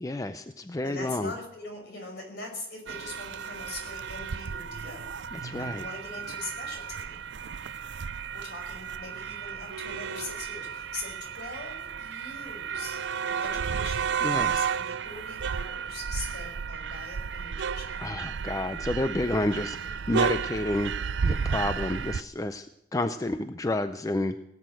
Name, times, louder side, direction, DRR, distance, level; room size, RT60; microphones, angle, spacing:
voice 1, 0.0-1.3 5.3-5.8 14.2-14.7 18.0-20.9 21.2-22.7 22.9-24.3, left 2 dB, 20° left, 10 dB, 0.4 m, -30 dB
voice 2, 0.8-7.2 8.3-18.0, left 2 dB, 60° left, 2 dB, 5.4 m, -42 dB
sound 1, 2.9-22.2, right 6 dB, 70° right, 0.4 m, -33 dB
18.0 x 8.3 x 7.6 m, 0.81 s
head